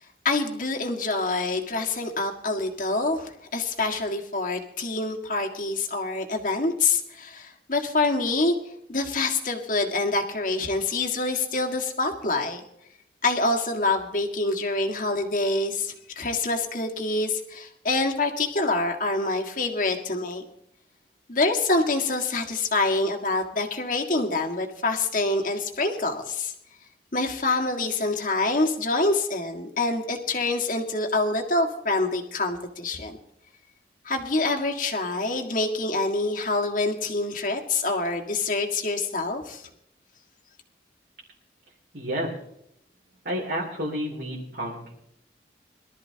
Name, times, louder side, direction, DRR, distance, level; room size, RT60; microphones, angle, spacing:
voice 1, 0.2-8.6 8.9-12.6 13.2-20.4 21.3-26.5 27.1-33.2 34.1-39.6, left 2 dB, 50° left, 2 dB, 1.9 m, -26 dB
voice 2, 41.9-42.4 43.2-44.9, equal, 65° right, -4 dB, 3.0 m, -30 dB
22.5 x 13.0 x 2.9 m, 0.77 s
head